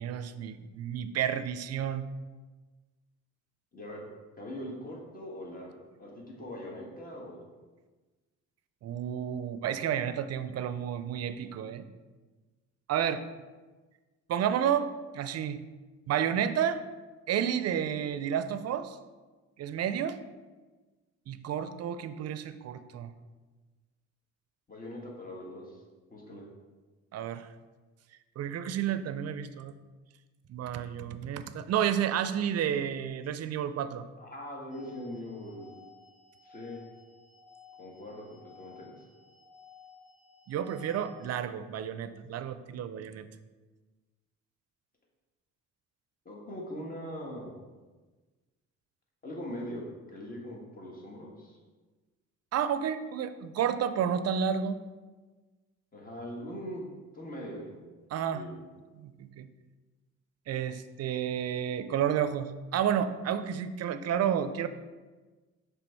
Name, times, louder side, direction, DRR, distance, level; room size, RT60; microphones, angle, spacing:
voice 1, 0.0-2.1 8.8-11.9 12.9-13.2 14.3-14.9 15.1-15.6 16.1-16.8 17.3-19.0 19.6-20.2 21.3-23.1 27.1-27.5 28.4-29.8 30.5-34.1 40.5-43.3 52.5-54.8 58.1-58.4 59.0-59.5 60.5-64.7, right 9 dB, 55° right, 12 dB, 0.5 m, -31 dB
voice 2, 3.7-4.0 4.4-7.4 24.7-25.8 26.1-26.4 34.2-35.7 36.4-36.8 37.8-39.0 46.2-47.6 49.2-51.6 55.9-56.8 57.1-57.7 58.3-58.6, equal, 30° left, -2 dB, 1.6 m, -41 dB
sound 1, 34.7-41.3, left 6 dB, ahead, 0.9 m, -56 dB
5.9 x 3.4 x 4.6 m, 1.3 s
cardioid pair, 90°, 30 cm